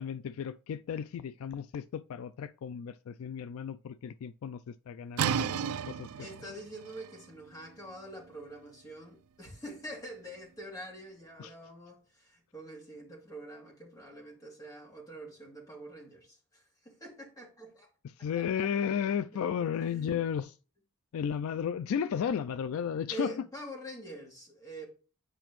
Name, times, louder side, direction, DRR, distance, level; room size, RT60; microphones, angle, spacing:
voice 1, 0.0-6.3 11.4-11.5 18.2-20.5 21.1-23.3, left 8 dB, 65° left, 0.3 m, -34 dB
sound 1, 5.2-10.8, right 7 dB, 70° right, 0.4 m, -36 dB
voice 2, 6.2-17.9 18.2-18.7 19.3-20.2 23.1-24.9, right 1 dB, 15° left, 2.4 m, -46 dB
9.0 x 5.0 x 3.1 m
head